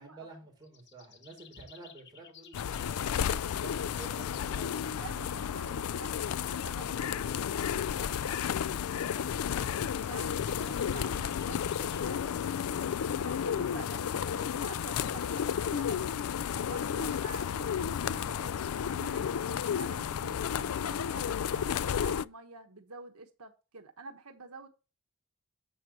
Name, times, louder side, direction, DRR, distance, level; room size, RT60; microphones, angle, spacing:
voice 1, 0.0-4.9 9.0-9.7, right 3 dB, 20° right, 4.6 m, -50 dB
sound 1, 0.6-2.9 9.6-12.1, left 8 dB, 50° left, 1.0 m, -55 dB
sound 2, 2.5-22.2, left 8 dB, 75° left, 0.4 m, -32 dB
sound 3, 3.7-21.6, equal, 15° left, 5.9 m, -54 dB
voice 2, 4.7-8.1 10.1-12.6 13.2-16.0 16.6-17.7 18.0-18.6 18.9-24.7, right 4 dB, 85° right, 1.3 m, -48 dB
10.5 x 8.0 x 2.9 m
head